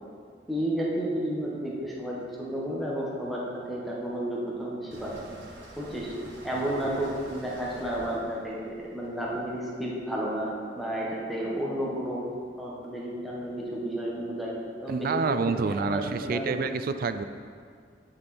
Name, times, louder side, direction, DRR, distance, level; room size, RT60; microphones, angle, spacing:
voice 1, 0.5-5.2 5.8-6.1 6.4-12.2 12.6-14.6 14.8-16.6, right 1 dB, ahead, -5 dB, 1.3 m, -32 dB
sound 1, 4.9-9.9, right 1 dB, 85° right, 1.5 m, -47 dB
voice 2, 14.9-17.2, right 4 dB, 50° right, 10 dB, 0.4 m, -28 dB
9.9 x 5.3 x 4.3 m, 2.1 s
head